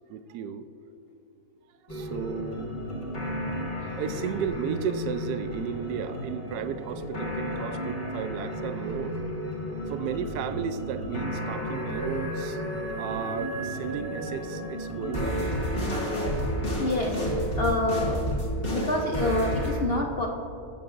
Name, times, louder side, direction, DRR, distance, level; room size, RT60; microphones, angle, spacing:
voice 1, 0.1-0.7 1.8-2.6 3.8-9.2 9.9-12.6 13.0-16.0, right 7 dB, 80° right, 10 dB, 1.1 m, -34 dB
sound 1, 1.9-19.7, equal, 35° left, 2.1 m, -32 dB
voice 2, 16.8-17.2 17.6-18.2 18.7-20.3, left 2 dB, 55° left, 0 dB, 0.7 m, -27 dB
20.5 x 6.9 x 2.5 m, 2.9 s
omnidirectional pair, 1.7 m